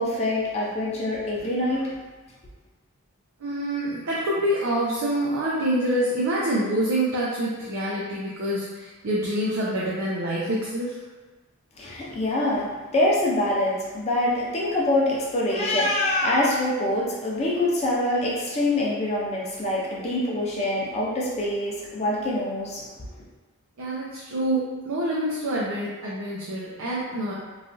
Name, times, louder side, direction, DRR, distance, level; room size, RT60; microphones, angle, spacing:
voice 1, 0.0-1.9 11.8-22.9, left 1 dB, 30° left, -4 dB, 0.5 m, -25 dB
voice 2, 3.4-11.0 23.8-27.3, right 1 dB, 75° right, -6 dB, 0.5 m, -26 dB
3.2 x 2.3 x 2.6 m, 1.2 s
head